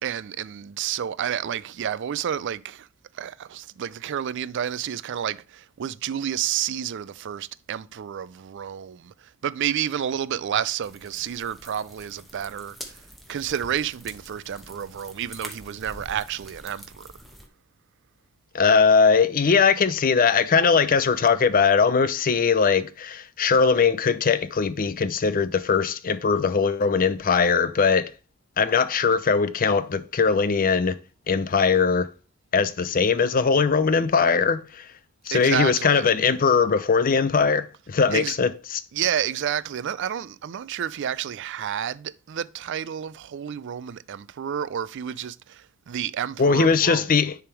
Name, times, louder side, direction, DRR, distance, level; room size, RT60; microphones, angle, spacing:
voice 1, 0.0-2.9 3.1-9.1 9.4-13.0 13.3-17.1 35.3-36.1 38.1-38.4 38.9-47.1, right 9 dB, 55° right, 0.4 m, -30 dB
sound 1, 10.8-17.5, equal, ahead, 1.1 m, -45 dB
voice 2, 18.5-28.1 28.6-31.0 31.3-32.1 32.5-34.9 35.3-38.8 46.4-47.4, left 5 dB, 40° left, 0.5 m, -20 dB
10.5 x 3.5 x 4.5 m
head